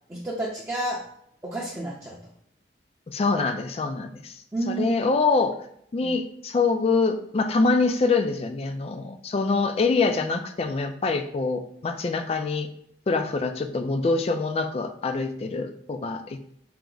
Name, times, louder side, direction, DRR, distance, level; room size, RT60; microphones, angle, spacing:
voice 1, 0.1-1.1 1.4-2.2 4.5-5.0 6.0-6.1, right 1 dB, 15° right, -6 dB, 0.5 m, -30 dB
voice 2, 3.1-4.3 4.7-5.6 5.9-12.7 13.1-16.5, left 3 dB, 35° left, 8 dB, 0.3 m, -25 dB
4.5 x 2.0 x 3.8 m, 0.72 s
head